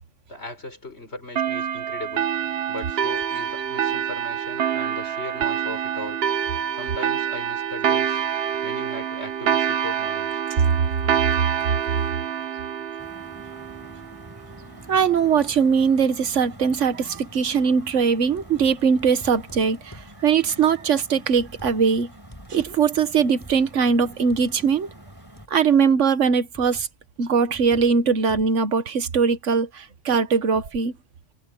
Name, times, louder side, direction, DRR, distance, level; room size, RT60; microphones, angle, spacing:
voice 1, 0.3-2.3 2.7-6.2 6.7-8.2 8.6-10.4, left 2 dB, 60° left, 6.9 m, -37 dB
sound 1, 1.4-14.4, right 9 dB, 55° right, 0.9 m, -26 dB
sound 2, 13.0-25.5, equal, 15° right, 3.9 m, -46 dB
voice 2, 14.9-22.1 22.5-24.9 25.5-26.9 27.2-30.9, right 6 dB, 75° right, 1.5 m, -21 dB
sound 3, 18.3-20.2 20.9-22.0 22.3-24.6 25.4-25.8 26.5-27.0 27.5-28.6, equal, 15° left, 3.8 m, -46 dB
omnidirectional pair, 1.3 m